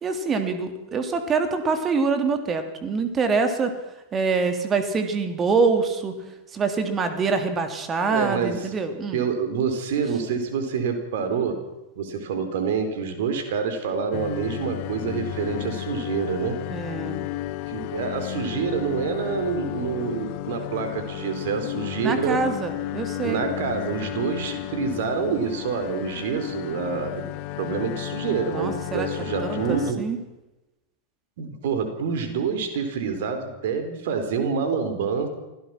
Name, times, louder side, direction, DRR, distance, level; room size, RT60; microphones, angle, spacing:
voice 1, 0.0-3.7 4.1-6.1 6.5-9.2 16.7-17.3 22.0-23.4 28.5-29.1 29.4-30.2, right 4 dB, 25° right, 7 dB, 3.2 m, -25 dB
voice 2, 8.1-8.7 9.1-11.6 12.0-16.6 17.7-22.4 23.2-27.3 27.6-30.0 31.4-35.3, right 6 dB, 55° right, 7 dB, 4.2 m, -27 dB
sound 1, 14.1-29.9, left 16 dB, 45° left, 1.2 m, -33 dB
25.5 x 17.0 x 6.1 m, 1.0 s
figure-of-eight pair, 90°, 0 cm